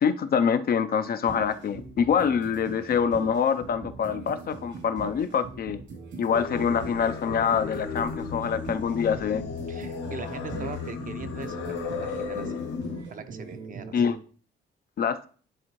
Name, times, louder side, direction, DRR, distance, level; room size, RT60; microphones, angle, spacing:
voice 1, 0.0-5.8 6.2-9.4 13.9-14.2 15.0-15.3, left 7 dB, 50° left, 0.5 m, -25 dB
sound 1, 1.3-14.2, right 4 dB, 75° right, 2.6 m, -42 dB
Singing, 6.3-13.0, left 5 dB, 70° left, 0.9 m, -35 dB
voice 2, 9.7-12.6 13.1-14.0, right 5 dB, 45° right, 0.7 m, -40 dB
10.0 x 3.6 x 3.0 m
cardioid pair, 90°, 20 cm